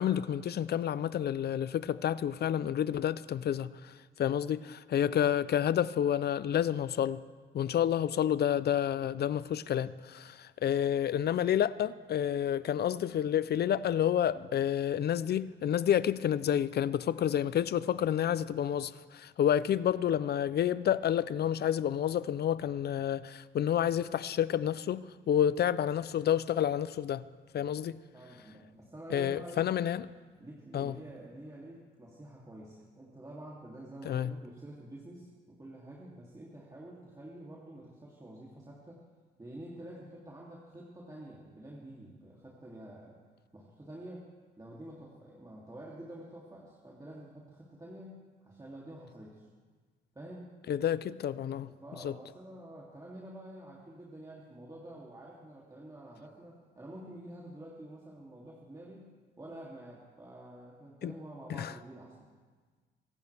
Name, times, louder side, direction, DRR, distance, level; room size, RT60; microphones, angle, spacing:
voice 1, 0.0-7.2 7.5-27.2 27.5-28.0 29.1-30.1 30.7-31.0 34.0-34.3 50.7-51.7 52.0-52.2 61.0-61.1 61.5-61.7, left 10 dB, 55° left, 0.6 m, -29 dB
voice 2, 28.1-29.7 30.4-39.0 39.4-43.2 43.5-44.3 44.6-49.4 50.1-50.5 51.6-62.3, right 1 dB, 15° right, 3.0 m, -48 dB
25.5 x 15.0 x 3.5 m
cardioid pair, 90°, 20 cm